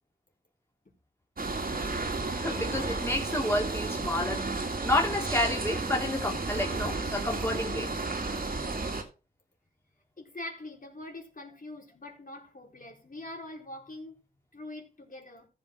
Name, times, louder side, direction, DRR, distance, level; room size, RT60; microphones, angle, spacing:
sound 1, 1.4-9.0, right 3 dB, 65° right, 2.2 m, -32 dB
voice 1, 2.3-7.9, left 1 dB, 15° left, 3.1 m, -30 dB
voice 2, 10.2-14.2 14.5-15.5, left 1 dB, 60° left, 4.1 m, -43 dB
14.5 x 5.6 x 4.4 m
wide cardioid pair, 55°, 16 cm